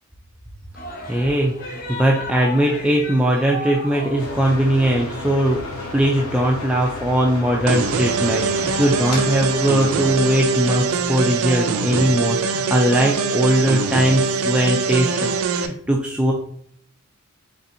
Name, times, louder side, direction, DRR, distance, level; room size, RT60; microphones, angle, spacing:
sound 1, 0.8-6.0, left 1 dB, 45° left, 0.7 m, -34 dB
voice 1, 1.1-1.5 1.9-5.6 5.9-15.3 15.5-16.3, right 1 dB, 5° right, -1 dB, 0.3 m, -20 dB
sound 2, 4.2-11.0, left 2 dB, 90° left, 0.9 m, -33 dB
sound 3, 7.7-15.7, right 5 dB, 75° right, 0.4 m, -23 dB
4.1 x 3.4 x 2.6 m, 0.65 s
head